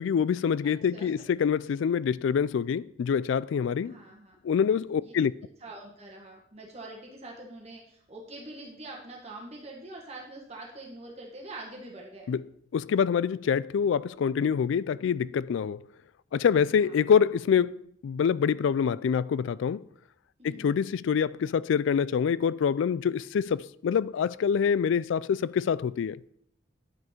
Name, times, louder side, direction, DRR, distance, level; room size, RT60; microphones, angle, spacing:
voice 1, 0.0-4.0 4.4-5.3 12.3-12.4 12.7-15.8 16.3-17.7 18.0-19.8 20.4-26.2, left 7 dB, 75° left, 0.3 m, -26 dB
voice 2, 0.6-1.1 3.8-4.4 5.0-5.1 5.6-12.3 16.6-17.0 20.4-20.8, right 2 dB, 30° right, 1.5 m, -44 dB
10.0 x 6.3 x 4.4 m
head